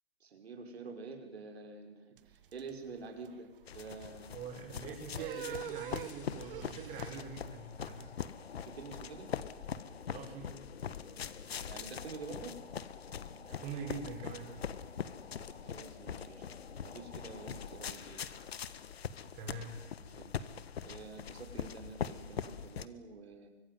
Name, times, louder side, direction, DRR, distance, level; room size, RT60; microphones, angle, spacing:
voice 1, 0.2-4.4 5.1-5.5 8.5-9.3 11.6-12.6 15.6-16.4 16.8-18.3 20.0-20.5 20.8-23.5, right 4 dB, 75° right, 4 dB, 5.5 m, -48 dB
sound 1, 2.2-7.4, right 10 dB, 55° right, 1.6 m, -46 dB
sound 2, 3.7-22.9, left 8 dB, 70° left, 1.6 m, -43 dB
voice 2, 4.3-8.2 10.1-10.5 13.4-14.5 19.3-19.8, right 5 dB, 20° right, 1 dB, 5.5 m, -44 dB
sound 3, 5.5-18.7, left 5 dB, 90° left, 3.2 m, -54 dB
25.0 x 22.0 x 9.4 m, 1.1 s
hypercardioid pair, 155°, 32 cm